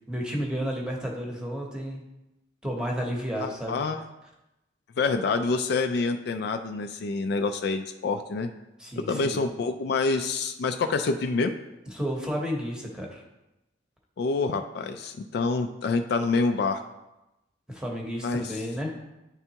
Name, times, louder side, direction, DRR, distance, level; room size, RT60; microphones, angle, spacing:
voice 1, 0.1-2.0 2.6-3.8 8.8-9.4 11.9-13.2 17.7-18.9, equal, 5° right, -1 dB, 0.9 m, -32 dB
voice 2, 3.4-4.0 5.0-8.5 9.0-11.6 14.2-16.8 18.2-18.5, left 4 dB, 60° left, 6 dB, 0.3 m, -27 dB
9.8 x 3.4 x 2.8 m, 0.95 s
head